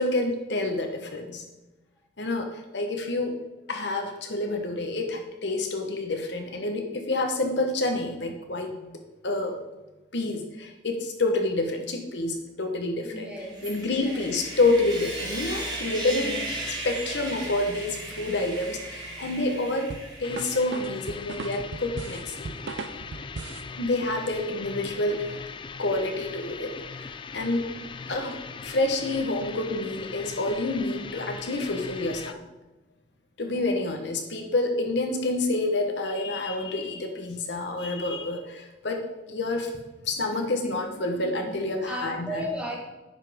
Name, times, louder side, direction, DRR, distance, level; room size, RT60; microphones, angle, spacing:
voice 1, 0.0-1.4 2.2-2.5 2.7-3.4 3.7-9.6 10.1-13.3 13.6-16.4 16.8-22.5 23.8-25.4 25.8-27.7 28.1-32.4 33.4-39.0 39.3-39.7 40.0-42.4, left 2 dB, 70° left, 3 dB, 1.1 m, -28 dB
voice 2, 13.0-14.2 15.8-16.4 33.4-33.8 40.7-41.5 41.9-42.8, equal, 5° right, -2 dB, 1.6 m, -37 dB
Sawing, 13.4-20.8, right 1 dB, 25° right, 2.4 m, -36 dB
sound 1, 19.9-23.7, right 4 dB, 75° right, 0.5 m, -37 dB
sound 2, 20.2-32.3, left 5 dB, 25° left, 0.3 m, -40 dB
9.9 x 5.7 x 3.6 m, 1.1 s
head